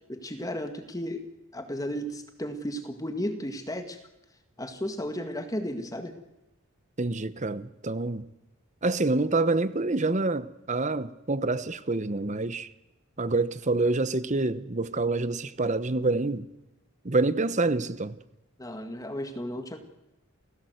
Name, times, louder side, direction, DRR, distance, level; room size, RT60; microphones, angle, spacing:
voice 1, 0.1-1.3 1.5-4.0 4.6-6.1 18.6-19.8, equal, 15° left, 1.8 m, -34 dB
voice 2, 7.0-8.3 8.8-12.7 13.2-16.5 17.0-18.2, right 2 dB, 35° right, 0.9 m, -27 dB
28.5 x 17.0 x 8.0 m
head